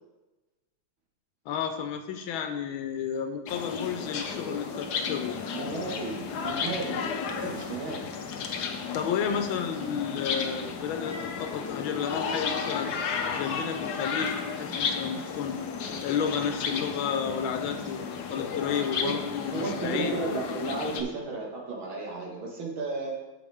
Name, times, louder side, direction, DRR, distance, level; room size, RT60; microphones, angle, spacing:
voice 1, 1.5-5.3 8.9-12.9 13.3-15.5 16.0-20.1, left 7 dB, 85° left, 7 dB, 1.5 m, -32 dB
sound 1, 3.5-21.0, left 5 dB, 65° left, 1.2 m, -33 dB
voice 2, 5.5-8.1 19.0-23.1, right 3 dB, 85° right, -1 dB, 2.4 m, -34 dB
8.4 x 6.9 x 3.5 m, 1.1 s
omnidirectional pair, 2.1 m